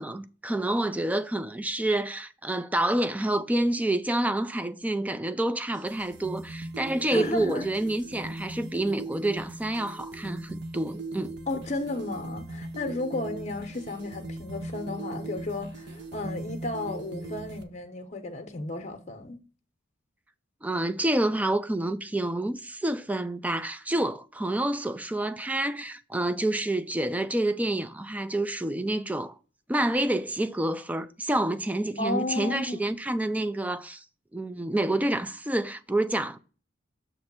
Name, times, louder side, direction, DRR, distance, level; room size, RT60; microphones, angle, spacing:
voice 1, 0.0-11.4 20.6-29.3 29.7-34.0 34.3-36.4, right 1 dB, 10° right, 0.3 m, -28 dB
sound 1, 5.6-17.6, right 2 dB, 60° right, 0.8 m, -39 dB
voice 2, 7.1-7.7 11.5-19.4 32.0-32.9, left 2 dB, 35° left, 0.8 m, -33 dB
6.7 x 3.2 x 5.9 m
head